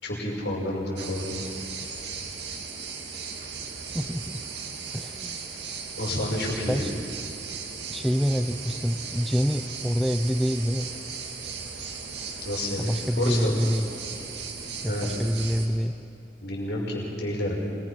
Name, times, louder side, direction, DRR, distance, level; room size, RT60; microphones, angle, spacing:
voice 1, 0.0-1.4 6.0-6.9 12.4-12.9 13.2-13.6 14.8-15.1 16.4-17.6, left 1 dB, 80° left, -3 dB, 5.8 m, -29 dB
sound 1, 1.0-15.7, right 5 dB, 80° right, 2.3 m, -37 dB
voice 2, 3.9-4.4 4.9-5.4 6.7-6.9 7.9-10.9 12.8-13.9 14.8-16.0, equal, ahead, 7 dB, 0.6 m, -26 dB
26.0 x 20.5 x 6.0 m, 3.0 s
head